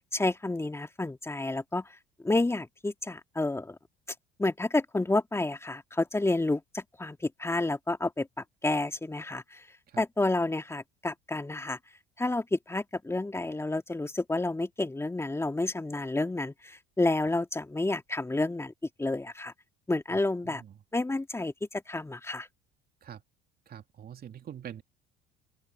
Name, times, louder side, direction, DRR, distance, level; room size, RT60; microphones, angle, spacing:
voice 1, 0.1-1.9 2.2-3.8 4.4-8.3 8.6-9.6 10.0-11.8 12.2-18.7 19.0-19.5 19.9-20.6 20.9-22.5, left 2 dB, 10° left, 2.4 m, -30 dB
voice 2, 23.7-24.8, right 9 dB, 45° right, 2.8 m, -44 dB
open air
hypercardioid pair, 70°, 21 cm